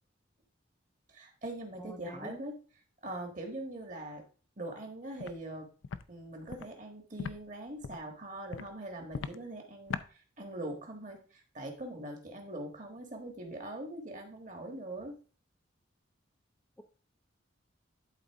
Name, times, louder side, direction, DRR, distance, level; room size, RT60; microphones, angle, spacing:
voice 1, 1.1-2.6 3.0-4.2 4.6-5.7 6.1-15.2, right 1 dB, 40° right, 4 dB, 1.5 m, -42 dB
voice 2, 1.8-2.5, equal, 10° left, 5 dB, 0.4 m, -46 dB
Walk footsteps, 5.2-5.3 5.8-6.0 6.5-6.6 7.2-7.3 7.8-8.1 8.5-8.7 9.1-9.4 9.9-10.1, left 5 dB, 75° left, 0.4 m, -38 dB
11.5 x 4.1 x 3.5 m, 0.39 s
head